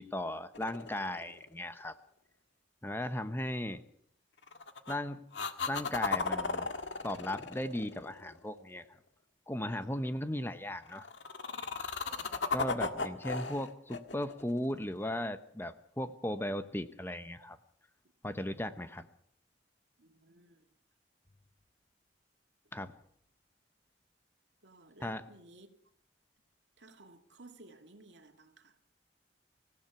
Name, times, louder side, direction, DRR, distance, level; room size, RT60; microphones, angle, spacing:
voice 1, 0.0-2.0 2.8-3.8 4.9-5.3 5.7-6.7 7.0-9.0 9.5-11.1 11.8-11.9 12.5-17.6 18.2-19.1 22.7-22.9 25.0-25.3, left 1 dB, 15° left, 0.9 m, -37 dB
sound 1, 0.5-1.8 4.4-5.0 5.3-8.6 10.9-15.2 19.0-19.1, left 4 dB, 90° left, 1.8 m, -36 dB
voice 2, 9.8-10.1 20.0-20.6 24.6-25.7 26.8-28.7, right 2 dB, 75° right, 2.3 m, -57 dB
26.0 x 16.5 x 6.0 m
head